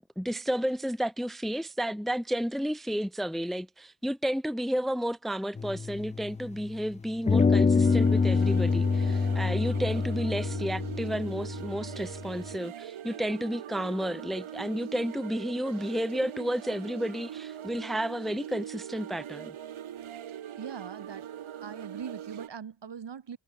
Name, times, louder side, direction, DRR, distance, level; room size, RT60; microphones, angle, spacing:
voice 1, 0.2-19.5, equal, ahead, 1.1 m, -32 dB
sound 1, 5.6-6.8 7.3-12.5, left 4 dB, 15° left, 0.3 m, -26 dB
sound 2, 7.8-22.5, right 10 dB, 80° right, 2.7 m, -42 dB
voice 2, 20.6-21.3 21.6-23.4, right 7 dB, 60° right, 4.4 m, -41 dB
cardioid pair, 90°, 48 cm